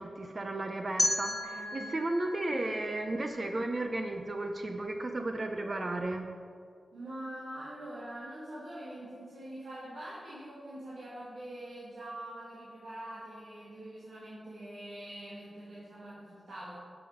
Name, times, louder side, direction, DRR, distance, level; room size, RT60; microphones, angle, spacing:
voice 1, 0.0-6.3, right 2 dB, 40° right, 4 dB, 0.7 m, -34 dB
sound 1, 1.0-3.9, left 1 dB, 10° left, 1.7 m, -35 dB
voice 2, 1.3-2.0 6.9-16.7, right 1 dB, 90° right, -9 dB, 2.4 m, -44 dB
11.0 x 7.0 x 5.1 m, 2.1 s
wide cardioid pair, 110°, 0 cm